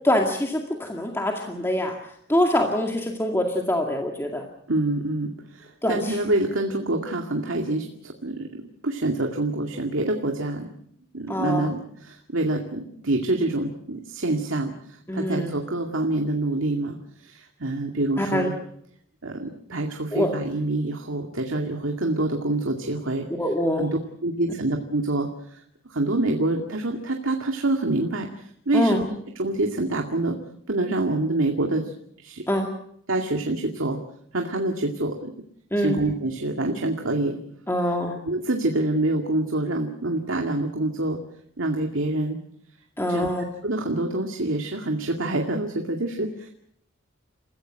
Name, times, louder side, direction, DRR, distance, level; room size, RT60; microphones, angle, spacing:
voice 1, 0.0-4.4 5.8-6.2 11.3-11.7 15.1-15.5 18.2-18.5 20.1-20.3 23.4-23.9 28.7-29.0 32.5-32.7 35.7-36.0 37.7-38.2 43.0-43.4, left 1 dB, 10° left, 1 dB, 2.2 m, -24 dB
voice 2, 4.7-8.5 8.8-10.7 11.1-18.5 19.2-23.3 23.8-25.6 25.9-29.0 29.4-30.4 30.7-32.4 33.1-34.0 34.3-35.3 35.8-37.4 38.2-41.2 41.6-42.4 43.1-43.3 43.6-46.5, right 2 dB, 70° right, 2 dB, 2.3 m, -26 dB
28.5 x 16.0 x 7.7 m, 0.70 s
head